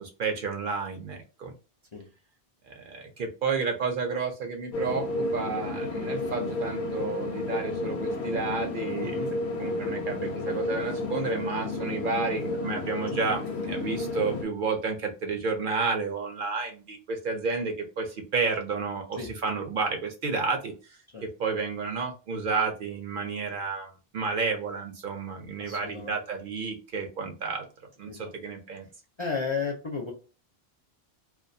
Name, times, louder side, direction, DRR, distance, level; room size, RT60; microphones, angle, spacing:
voice 1, 0.0-1.5 2.7-9.2 9.6-27.7 28.0-28.9, right 4 dB, 60° right, 4 dB, 0.6 m, -31 dB
sound 1, 4.7-14.4, left 2 dB, 85° left, 0.8 m, -31 dB
voice 2, 9.0-9.3 13.1-13.2 19.2-19.3 21.1-21.3 22.6-22.7 25.6-26.2 28.1-28.3 29.2-30.1, left 5 dB, 45° left, -1 dB, 0.4 m, -34 dB
2.3 x 2.2 x 2.6 m, 0.34 s
omnidirectional pair, 1.1 m